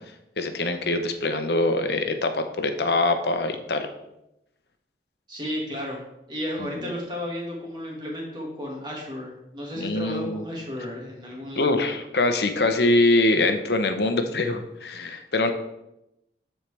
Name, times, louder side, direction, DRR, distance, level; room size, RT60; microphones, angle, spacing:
voice 1, 0.4-3.9 6.8-6.9 9.8-10.4 11.6-15.5, left 2 dB, 70° left, 7 dB, 0.8 m, -23 dB
voice 2, 5.3-6.0 6.3-11.7, left 1 dB, 25° right, -2 dB, 1.9 m, -33 dB
13.0 x 4.4 x 3.4 m, 0.87 s
head